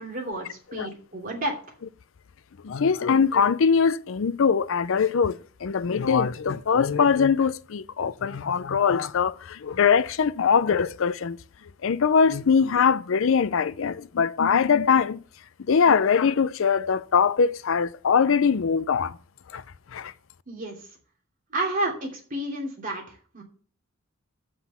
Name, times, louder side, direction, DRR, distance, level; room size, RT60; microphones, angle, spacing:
voice 1, 0.0-1.5 20.5-20.9 21.5-23.4, right 1 dB, 40° right, 2.9 m, -31 dB
voice 2, 2.6-5.3 5.6-11.4 11.8-15.2 15.7-19.1 19.5-19.6 19.9-20.1, left 6 dB, 65° left, 0.5 m, -22 dB
7.6 x 5.9 x 7.0 m
head